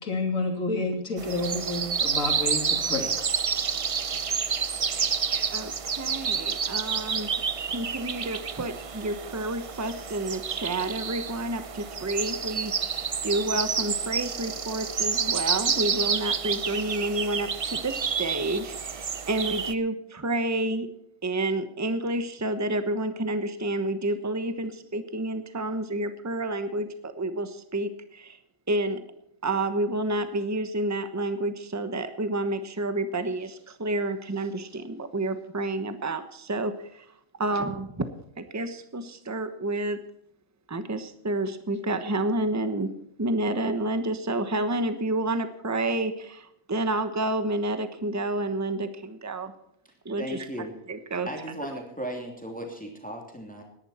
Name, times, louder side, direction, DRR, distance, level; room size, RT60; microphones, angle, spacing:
voice 1, 0.0-3.1, left 2 dB, 80° left, 3 dB, 3.3 m, -29 dB
sound 1, 1.2-19.7, right 6 dB, 45° right, 0.4 m, -29 dB
voice 2, 5.5-7.3 7.7-20.9 21.2-28.4 28.7-29.1 29.4-37.1 37.4-37.9 38.4-40.0 40.7-49.5 50.0-50.5 50.9-51.3, right 2 dB, 15° right, 10 dB, 1.0 m, -29 dB
voice 3, 50.2-50.7 51.3-53.6, right 1 dB, 5° left, 1 dB, 2.9 m, -36 dB
18.5 x 11.0 x 4.3 m, 0.76 s
omnidirectional pair, 1.4 m